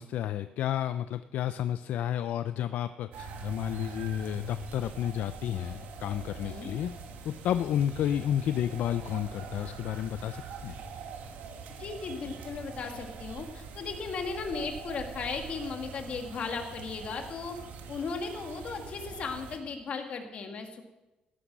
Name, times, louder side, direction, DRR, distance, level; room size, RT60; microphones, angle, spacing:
voice 1, 0.0-6.9 7.2-10.8, left 11 dB, 65° left, 12 dB, 0.4 m, -31 dB
sound 1, 3.1-19.6, right 3 dB, 85° right, 1.8 m, -42 dB
voice 2, 11.8-17.6 17.9-20.8, left 5 dB, 45° left, 4 dB, 1.9 m, -36 dB
16.0 x 10.0 x 6.1 m, 1.0 s
cardioid pair, 155°, 3 cm